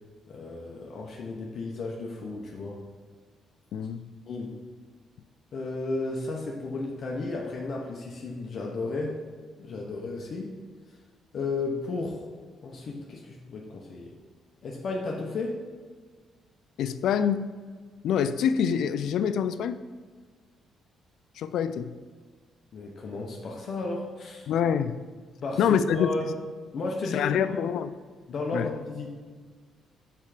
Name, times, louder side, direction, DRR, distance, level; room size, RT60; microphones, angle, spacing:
voice 1, 0.3-2.8 4.3-4.6 5.5-9.2 9.6-10.6 11.3-12.3 12.6-14.1 14.6-15.6 22.7-24.5 25.4-26.4 26.7-27.4 28.3-29.1, left 3 dB, 55° left, -1 dB, 0.9 m, -33 dB
voice 2, 3.7-4.1 16.8-17.5 18.0-19.8 21.4-21.9 24.5-25.0 25.6-26.1 27.1-27.9 28.5-28.7, left 8 dB, 75° left, 12 dB, 0.3 m, -26 dB
5.6 x 4.7 x 5.0 m, 1.5 s
cardioid pair, 90°, 0 cm